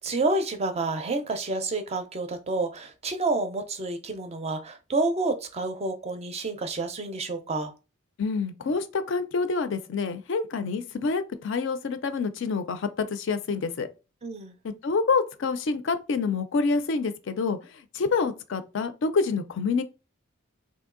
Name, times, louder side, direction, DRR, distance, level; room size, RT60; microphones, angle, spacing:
voice 1, 0.0-7.7 14.2-14.6, right 2 dB, 30° right, 0.4 m, -29 dB
voice 2, 8.2-13.9 14.6-19.8, left 4 dB, 60° left, 0.4 m, -27 dB
2.9 x 2.6 x 3.7 m
head